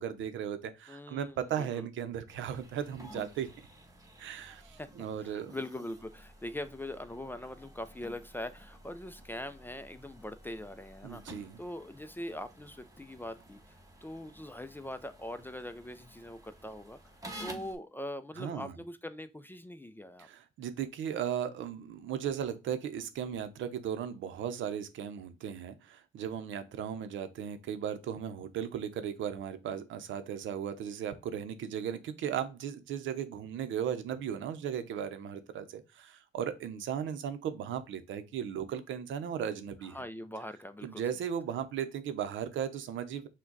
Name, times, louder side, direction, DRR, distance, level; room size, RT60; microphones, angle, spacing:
voice 1, 0.0-3.5 4.2-5.6 11.0-11.6 18.4-18.7 20.2-40.0 40.8-43.3, right 9 dB, 75° right, 0.7 m, -36 dB
voice 2, 0.9-1.9 4.8-4.9 5.2-13.8 14.0-17.0 17.4-20.3 39.9-41.0, left 1 dB, 10° left, 0.4 m, -42 dB
sound 1, 2.3-17.7, equal, 15° right, 1.1 m, -52 dB
6.0 x 2.2 x 3.9 m
cardioid pair, 90°, 20 cm